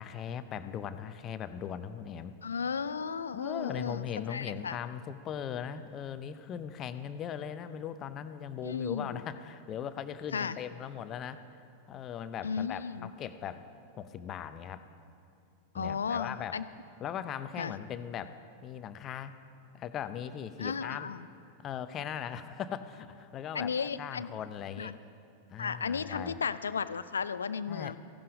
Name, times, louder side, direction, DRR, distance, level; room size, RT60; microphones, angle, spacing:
voice 1, 0.0-2.3 3.3-11.4 11.9-13.7 14.0-14.9 15.7-16.6 17.0-18.4 18.6-19.4 19.7-21.1 21.6-25.0 25.5-26.4 27.7-28.0, left 8 dB, 30° left, 12 dB, 0.6 m, -39 dB
voice 2, 2.4-4.8 8.6-9.2 10.3-10.6 12.4-13.1 15.7-16.6 17.6-17.7 20.6-21.3 23.5-24.3 24.8-24.9 25.6-28.0, left 6 dB, 70° left, 15 dB, 0.4 m, -34 dB
16.0 x 11.0 x 5.0 m, 2.5 s
figure-of-eight pair, 90°, 0 cm